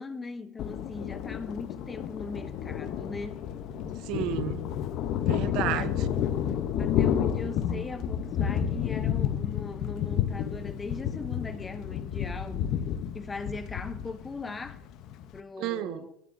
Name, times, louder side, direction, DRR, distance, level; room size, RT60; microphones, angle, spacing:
voice 1, 0.0-3.4 5.7-6.0 6.8-12.7 13.1-14.8 15.3-16.1, left 4 dB, 15° left, 0.7 m, -39 dB
Thunder, 0.6-15.4, left 9 dB, 50° left, 0.7 m, -30 dB
voice 2, 3.8-4.6 5.3-6.1 15.6-16.1, right 12 dB, 55° right, 0.7 m, -32 dB
13.0 x 8.9 x 2.6 m
supercardioid pair, 105°, 0 cm